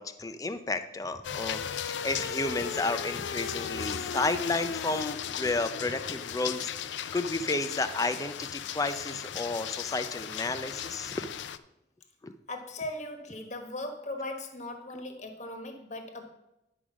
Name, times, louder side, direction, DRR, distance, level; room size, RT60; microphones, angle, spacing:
voice 1, 0.0-11.3 12.2-12.3, left 3 dB, 20° left, 0.4 m, -32 dB
sound 1, 1.2-11.6, left 8 dB, 80° left, 0.4 m, -36 dB
voice 2, 12.5-16.3, left 1 dB, 40° left, 1.2 m, -38 dB
10.5 x 4.9 x 6.1 m
head